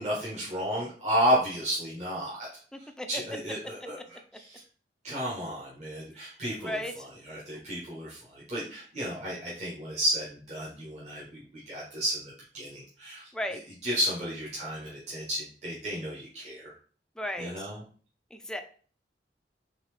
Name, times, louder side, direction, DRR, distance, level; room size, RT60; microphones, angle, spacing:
voice 1, 0.0-2.5 3.1-4.6 5.0-13.3 13.8-16.7 17.4-17.8, equal, 40° right, -5 dB, 1.2 m, -32 dB
voice 2, 2.7-3.2 6.6-7.1 13.3-13.6 17.2-17.7 18.3-18.6, equal, 5° left, 6 dB, 0.4 m, -35 dB
4.1 x 3.5 x 3.3 m, 0.43 s
head